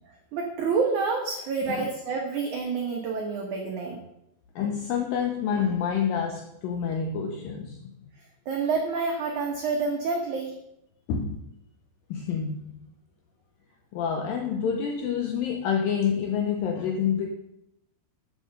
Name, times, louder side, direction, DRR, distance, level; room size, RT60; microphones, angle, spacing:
voice 1, 0.3-4.0 8.5-10.5, right 4 dB, 60° right, 0 dB, 2.2 m, -28 dB
voice 2, 4.6-7.9 11.1-11.5 12.1-12.7 13.9-17.3, left 7 dB, 75° left, 3 dB, 2.1 m, -28 dB
9.2 x 7.6 x 6.6 m, 0.81 s
omnidirectional pair, 5.0 m